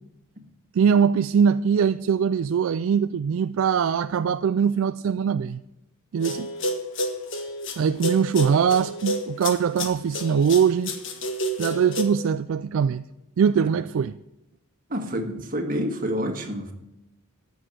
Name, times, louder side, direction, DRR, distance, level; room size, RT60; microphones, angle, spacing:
voice 1, 0.7-5.6 6.1-6.5 7.8-10.9 11.6-13.0 13.4-14.2, right 7 dB, 65° right, 0.3 m, -22 dB
sound 1, 6.2-12.0, left 1 dB, 55° left, 1.5 m, -30 dB
voice 2, 14.9-16.7, equal, 40° right, 1.6 m, -28 dB
14.0 x 6.4 x 7.6 m
head